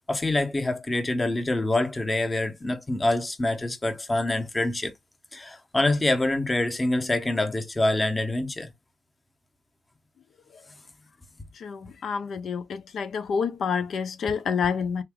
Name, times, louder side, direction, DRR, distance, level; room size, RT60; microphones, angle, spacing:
voice 1, 0.1-4.9 5.3-8.7, left 2 dB, 20° left, 0.9 m, -26 dB
voice 2, 11.6-15.0, left 6 dB, 65° left, 0.8 m, -28 dB
3.5 x 2.7 x 3.5 m
cardioid pair, 90°, 0 cm